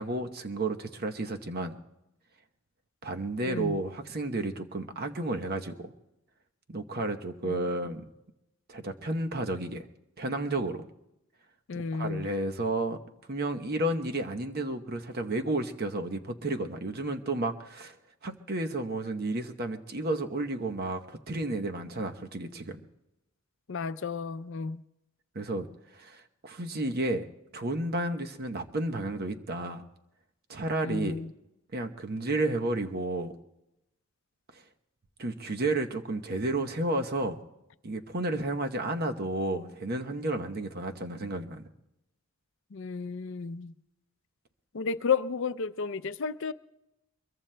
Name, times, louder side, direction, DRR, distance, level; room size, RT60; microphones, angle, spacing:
voice 1, 0.0-1.8 3.0-5.9 6.7-8.1 8.7-9.8 10.2-10.8 11.7-13.0 13.3-17.9 18.2-22.8 25.3-25.7 25.9-27.3 27.5-29.8 30.5-31.2 31.7-33.3 35.2-37.4 37.8-41.6, right 2 dB, 50° right, 0.9 m, -32 dB
voice 2, 3.4-3.8 7.4-7.6 11.7-12.3 23.7-24.8 30.8-31.3 42.7-43.7 44.7-46.5, left 5 dB, 65° left, 0.5 m, -32 dB
23.5 x 22.0 x 2.2 m
head